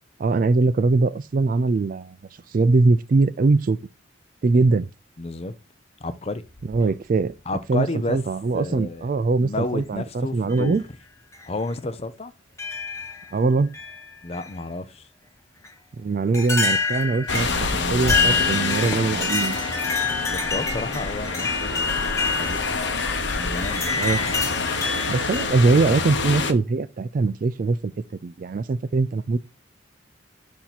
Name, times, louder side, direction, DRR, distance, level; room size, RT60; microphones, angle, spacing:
voice 1, 0.2-2.2 2.5-3.8 4.4-4.9 6.7-7.3 7.7-10.8 13.3-13.7 16.0-19.6 23.9-24.2 25.1-27.9 28.2-29.4, right 3 dB, 45° right, 0.3 m, -22 dB
voice 2, 5.2-5.5 6.0-6.4 7.5-8.2 8.5-9.1 9.4-10.8 11.5-12.3 14.2-15.1 20.3-22.0 22.4-22.8 23.4-23.9, left 2 dB, 30° left, 0.5 m, -31 dB
sound 1, 6.5-7.3 8.5-8.6 9.6-9.9 10.5-10.7 11.3-11.4 12.6-13.3 13.7-14.5 15.6-15.7 16.3-25.5, left 4 dB, 15° left, 0.9 m, -27 dB
sound 2, 17.3-26.5, left 4 dB, 65° left, 0.8 m, -27 dB
6.8 x 2.8 x 5.8 m
head